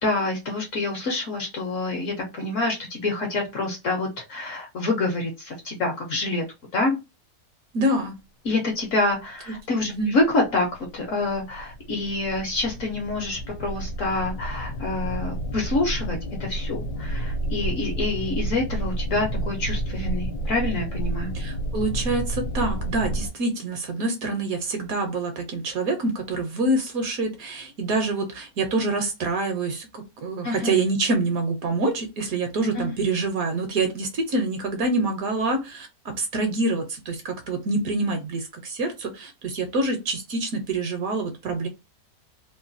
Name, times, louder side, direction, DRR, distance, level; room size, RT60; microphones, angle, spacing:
voice 1, 0.0-6.4 6.7-7.0 8.4-10.7 10.9-21.3 30.4-30.7 32.7-32.9, left 2 dB, 60° left, 2 dB, 0.9 m, -27 dB
voice 2, 7.7-8.2 9.8-10.1 21.3-35.9 36.2-41.7, right 2 dB, 65° right, 5 dB, 1.0 m, -26 dB
sound 1, 9.1-9.6 10.0-23.3, right 1 dB, 85° left, 1.2 m, -30 dB
3.0 x 2.2 x 2.5 m, 0.25 s
omnidirectional pair, 1.8 m